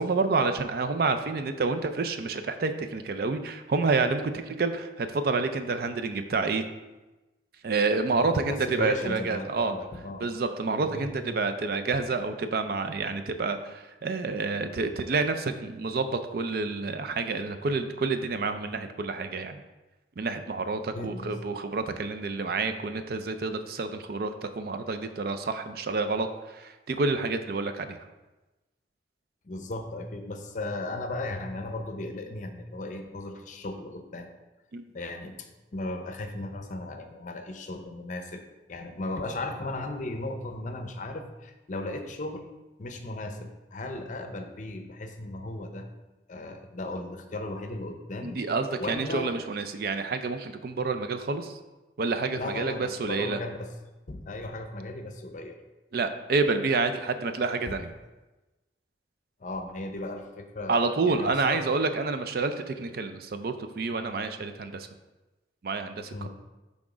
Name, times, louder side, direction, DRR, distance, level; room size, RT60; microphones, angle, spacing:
voice 1, 0.0-6.6 7.6-9.8 10.2-19.6 20.2-28.0 34.7-34.8 48.2-51.6 52.0-53.4 55.9-57.9 60.7-64.9 65.6-66.3, right 3 dB, 55° right, 8 dB, 0.4 m, -28 dB
voice 2, 8.2-10.3 10.8-11.1 20.9-21.5 29.4-34.3 34.9-38.4 38.7-42.5 42.8-45.9 46.3-48.4 48.8-49.4 52.4-53.7 54.1-55.6 57.7-57.8 59.4-61.6 66.1-66.3, left 2 dB, 45° left, 6 dB, 0.6 m, -36 dB
6.1 x 3.6 x 4.9 m, 1.1 s
head